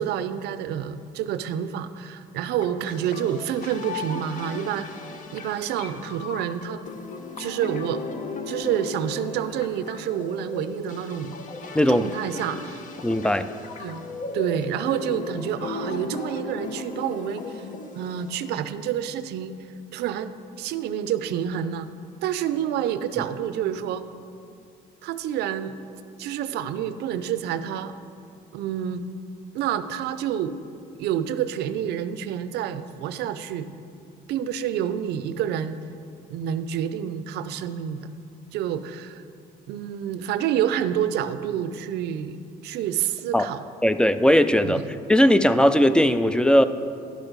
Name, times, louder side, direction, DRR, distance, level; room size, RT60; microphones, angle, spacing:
voice 1, 0.0-4.9 5.3-6.8 7.4-8.0 8.5-11.4 11.9-12.8 13.8-14.1 14.3-17.6 17.9-19.5 19.9-21.9 22.2-24.0 25.0-25.8 26.2-27.9 28.5-29.0 29.5-30.6 31.0-33.7 34.3-35.8 36.3-38.1 38.5-39.2 39.7-43.6 44.6-44.8, right 9 dB, 75° right, 12 dB, 0.5 m, -28 dB
sound 1, 2.6-18.6, left 3 dB, 50° left, 0.8 m, -36 dB
voice 2, 11.7-12.1 13.0-13.5 43.3-43.5 43.8-44.8 45.1-46.7, equal, 5° left, 11 dB, 0.3 m, -18 dB
11.0 x 6.3 x 5.0 m, 2.5 s
cardioid pair, 110°, 17 cm